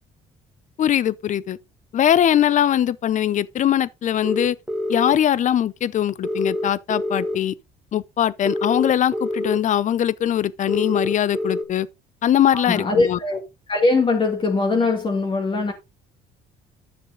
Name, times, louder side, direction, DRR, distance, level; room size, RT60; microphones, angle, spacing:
voice 1, 0.8-1.6 1.9-4.6 4.9-7.5 7.9-11.9 12.2-13.2, left 10 dB, 45° left, 0.7 m, -21 dB
sound 1, 4.2-5.1 6.2-7.4 8.5-9.6 10.7-11.6, left 1 dB, ahead, 1.6 m, -26 dB
voice 2, 12.5-13.4 13.7-15.7, left 3 dB, 30° left, 2.1 m, -21 dB
10.5 x 6.8 x 3.7 m
cardioid pair, 110°, 17 cm